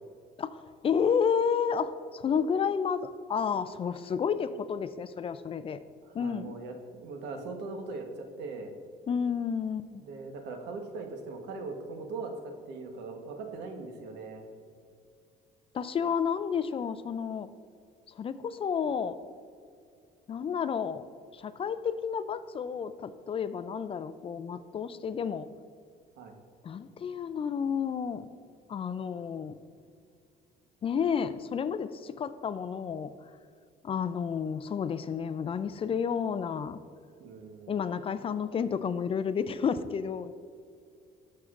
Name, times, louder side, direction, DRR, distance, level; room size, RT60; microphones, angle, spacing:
voice 1, 0.4-5.8 6.1-6.6 9.1-10.0 15.7-17.5 18.2-19.2 20.3-21.0 21.3-25.5 26.6-28.3 28.7-29.6 30.8-33.1 33.8-36.8 37.7-40.3, left 7 dB, 35° left, 13 dB, 0.4 m, -31 dB
voice 2, 6.0-8.7 10.0-14.4 26.2-26.4 37.2-37.8, right 3 dB, 85° right, 4 dB, 1.1 m, -40 dB
12.5 x 6.5 x 2.5 m, 2.3 s
cardioid pair, 110°, 17 cm